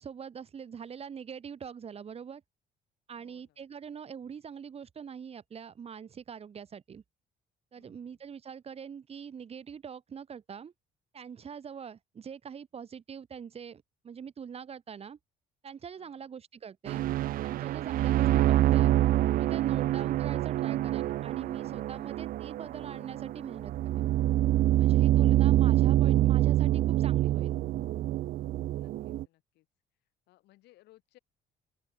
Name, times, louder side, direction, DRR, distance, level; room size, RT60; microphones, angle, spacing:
voice 1, 0.0-2.4 3.1-7.0 7.7-10.7 11.1-15.2 15.6-17.0 17.4-19.0 19.4-24.1 24.8-27.6, right 7 dB, 35° right, 1.4 m, -43 dB
voice 2, 3.1-3.6 7.8-8.2 16.0-16.3 28.7-29.7 30.3-31.2, left 17 dB, 80° left, 5.7 m, -64 dB
sound 1, 16.9-29.2, right 14 dB, 55° right, 0.4 m, -26 dB
open air
cardioid pair, 110°, 17 cm